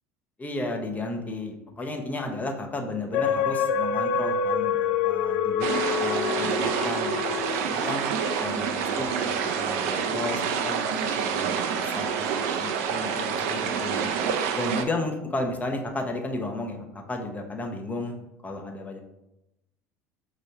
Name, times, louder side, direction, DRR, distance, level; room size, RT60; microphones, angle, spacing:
voice 1, 0.4-5.7 6.0-8.1 8.4-11.5 11.8-12.2 12.6-14.1 14.5-18.1 18.4-19.0, left 2 dB, 20° left, 2 dB, 0.8 m, -33 dB
sound 1, 3.1-8.8 9.3-9.4, left 6 dB, 60° left, 0.4 m, -27 dB
sound 2, 5.6-14.8, right 6 dB, 65° right, 0.5 m, -27 dB
5.3 x 3.1 x 2.8 m, 0.90 s
figure-of-eight pair, 65°, 8 cm